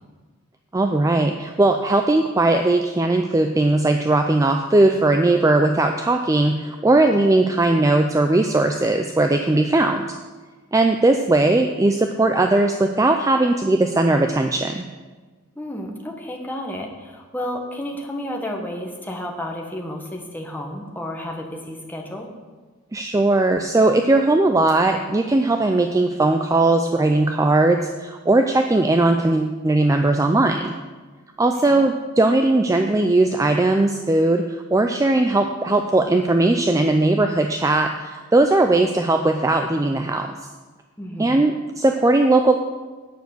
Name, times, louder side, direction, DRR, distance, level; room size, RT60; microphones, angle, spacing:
voice 1, 0.7-10.1 10.7-14.8 22.9-30.8 31.4-40.3 41.2-42.6, right 2 dB, 15° right, 5 dB, 0.3 m, -18 dB
voice 2, 15.6-22.3 31.7-31.8 41.0-41.4, left 1 dB, 10° left, 0 dB, 1.2 m, -31 dB
9.3 x 6.4 x 6.7 m, 1.3 s
head